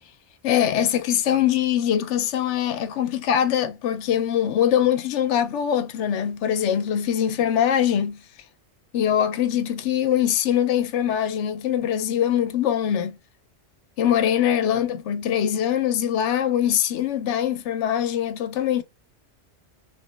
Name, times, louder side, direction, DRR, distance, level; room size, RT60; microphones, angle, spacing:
voice 1, 0.4-8.2 8.9-13.2 14.0-18.8, left 10 dB, 85° left, 0.9 m, -22 dB
3.1 x 2.0 x 3.2 m
omnidirectional pair, 1.2 m